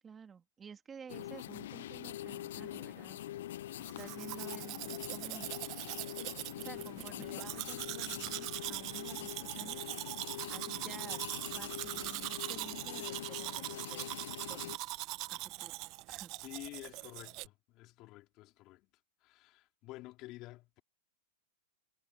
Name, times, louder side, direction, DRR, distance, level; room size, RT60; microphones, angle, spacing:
voice 1, 0.0-3.2 3.8-5.5 6.6-10.1 10.5-14.1 14.5-14.9 15.3-15.8 16.1-16.3, right 6 dB, 20° right, 2.6 m, -52 dB
sound 1, 1.1-14.8, left 13 dB, 70° left, 0.3 m, -44 dB
Domestic sounds home sounds, 3.9-17.5, right 22 dB, 45° right, 0.7 m, -42 dB
voice 2, 16.4-18.9 19.2-20.8, left 18 dB, 40° left, 3.5 m, -50 dB
hypercardioid pair, 120°, 0 cm